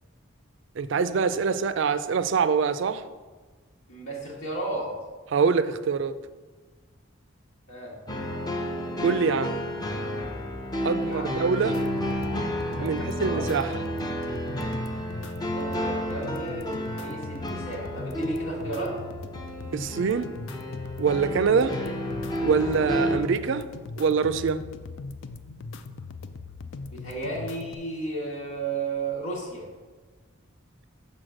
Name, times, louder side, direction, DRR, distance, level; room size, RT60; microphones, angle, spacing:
voice 1, 0.8-3.1 5.3-6.2 9.0-9.6 10.8-11.8 12.8-13.8 19.7-20.3 21.0-21.7 22.4-23.7 24.0-24.6, right 5 dB, 60° right, 13 dB, 0.3 m, -24 dB
voice 2, 3.9-4.9 7.7-8.0 11.0-11.4 12.8-13.4 15.5-19.0 21.5-21.9 26.9-29.7, right 2 dB, 85° left, -3 dB, 1.7 m, -34 dB
sound 1, 8.1-23.2, equal, 20° left, 0.6 m, -31 dB
sound 2, 11.7-27.7, left 4 dB, 65° left, 0.4 m, -40 dB
6.2 x 4.2 x 6.4 m, 1.4 s
head